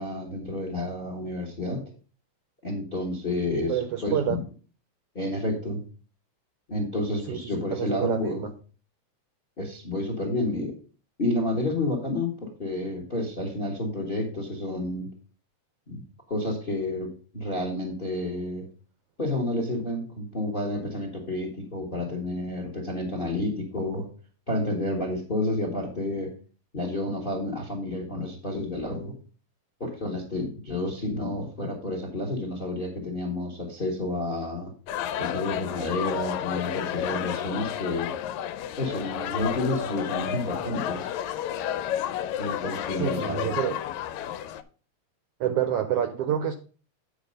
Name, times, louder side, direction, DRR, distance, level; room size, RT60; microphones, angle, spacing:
voice 1, 0.0-1.8 2.6-4.4 5.1-5.8 6.7-8.5 9.6-10.7 11.2-15.1 15.9-16.0 16.3-18.6 19.2-24.1 24.5-26.3 26.7-29.1 29.8-34.7 35.2-38.1 38.8-41.1 42.4-43.5, left 2 dB, 35° left, 3 dB, 0.9 m, -30 dB
voice 2, 3.7-4.4 7.3-8.5 43.0-43.8 45.4-46.6, right 10 dB, 75° right, 8 dB, 1.4 m, -27 dB
sound 1, 34.9-44.6, left 10 dB, 80° left, 1.9 m, -31 dB
8.8 x 5.0 x 5.2 m, 0.38 s
omnidirectional pair, 3.4 m